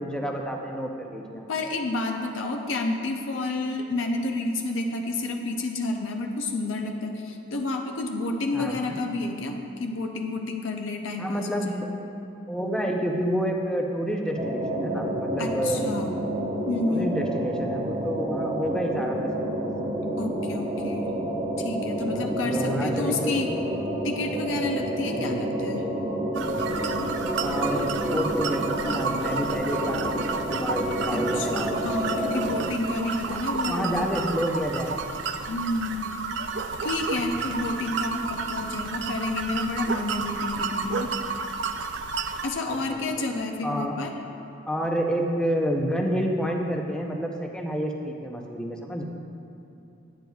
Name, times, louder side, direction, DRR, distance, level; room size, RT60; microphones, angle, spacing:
voice 1, 0.0-1.5 8.5-9.0 11.2-11.9 12.5-15.8 16.9-19.7 22.1-23.4 25.2-25.4 27.4-31.8 33.7-35.0 42.7-43.0 43.6-44.0 44.7-49.1, equal, 5° left, 1 dB, 0.5 m, -29 dB
voice 2, 1.5-11.9 15.4-16.1 16.7-17.1 20.2-21.1 21.6-23.5 24.0-25.9 31.1-34.1 35.5-36.2 36.8-41.1 42.4-44.1, left 2 dB, 75° left, 3 dB, 0.5 m, -30 dB
sound 1, 14.4-32.7, right 1 dB, 20° right, 1.2 m, -29 dB
sound 2, 26.3-42.5, right 4 dB, 65° right, 0.3 m, -31 dB
9.2 x 8.8 x 2.3 m, 2.7 s
head